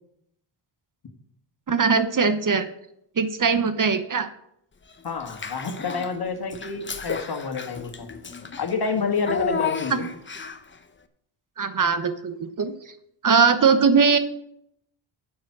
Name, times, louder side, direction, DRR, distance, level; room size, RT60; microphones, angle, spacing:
voice 1, 1.7-2.7 3.2-4.3 9.9-10.0 11.6-12.9 13.2-14.2, right 5 dB, 40° right, 10 dB, 0.9 m, -20 dB
voice 2, 5.0-8.1 8.6-10.1, left 4 dB, 50° left, 5 dB, 1.9 m, -28 dB
Child speech kid speaking / Bathtub (filling or washing), 5.2-6.1 6.5-10.7, left 5 dB, 25° left, 0.9 m, -32 dB
9.2 x 7.5 x 6.1 m, 0.76 s
cardioid pair, 75°, 49 cm